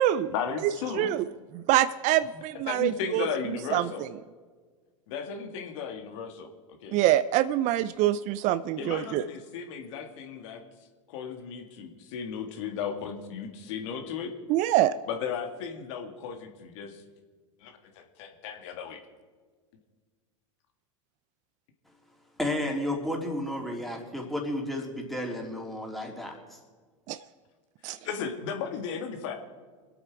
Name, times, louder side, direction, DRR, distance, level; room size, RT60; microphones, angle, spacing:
voice 1, 0.3-1.1 2.3-4.1 5.1-6.5 6.8-7.0 8.8-10.6 11.1-14.3 15.1-17.0 17.6-19.0 28.0-29.3, left 6 dB, 65° left, 5 dB, 1.9 m, -35 dB
voice 2, 1.7-3.3 3.7-3.9 6.9-9.2 14.5-14.9 27.1-27.2 27.8-28.0, right 13 dB, 45° right, 15 dB, 0.5 m, -24 dB
voice 3, 22.4-26.3, left 1 dB, ahead, -1 dB, 3.5 m, -32 dB
25.5 x 8.5 x 4.8 m, 1.5 s
hypercardioid pair, 95°, 17 cm